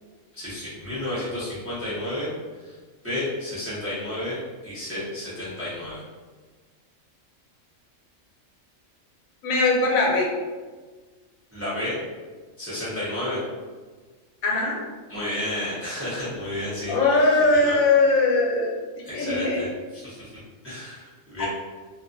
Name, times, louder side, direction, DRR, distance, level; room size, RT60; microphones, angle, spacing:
voice 1, 0.3-2.3 2.6-2.8 3.0-6.0 11.5-12.0 12.6-13.4 15.1-17.0 17.5-17.8 19.0-19.7 19.9-20.3 20.6-21.5, left 1 dB, 15° right, -10 dB, 0.6 m, -31 dB
voice 2, 9.4-10.3 13.3-13.4 14.4-14.8 16.9-18.8 19.1-19.7 21.4-21.5, left 3 dB, 85° left, -1 dB, 1.0 m, -21 dB
2.5 x 2.2 x 2.5 m, 1.4 s
omnidirectional pair, 1.4 m